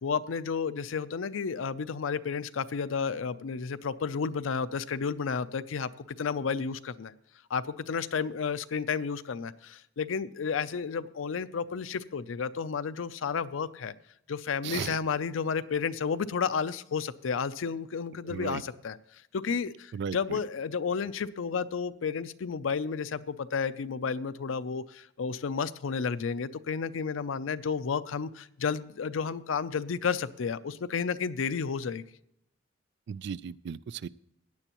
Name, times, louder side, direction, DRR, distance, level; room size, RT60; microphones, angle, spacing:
voice 1, 0.0-5.9 6.2-7.1 7.5-13.9 14.3-19.0 19.3-32.0, left 5 dB, 85° left, 13 dB, 0.5 m, -32 dB
voice 2, 14.6-15.0 18.2-18.6 19.9-20.4 33.1-34.1, right 7 dB, 60° right, 19 dB, 0.3 m, -36 dB
16.5 x 9.8 x 3.0 m, 0.77 s
head